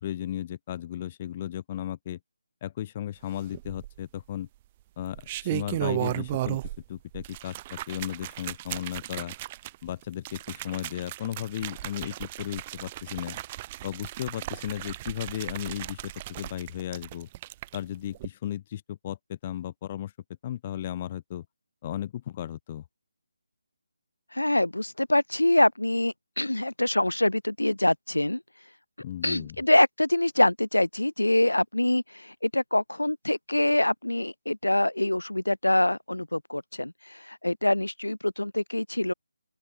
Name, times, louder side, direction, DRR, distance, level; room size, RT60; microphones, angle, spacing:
voice 1, 0.0-2.2 2.6-4.5 5.0-6.6 6.9-9.3 9.8-13.4 13.8-17.3 17.7-20.1 20.4-21.4 21.8-22.8 29.0-29.6, left 11 dB, 25° left, 2.1 m, -35 dB
sound 1, 3.5-4.2 5.0-6.8 7.1-17.8 18.1-18.3, right 15 dB, 20° right, 1.2 m, -35 dB
voice 2, 24.3-28.4 29.2-39.1, left 1 dB, 80° left, 1.1 m, -25 dB
open air
figure-of-eight pair, 150°, 0 cm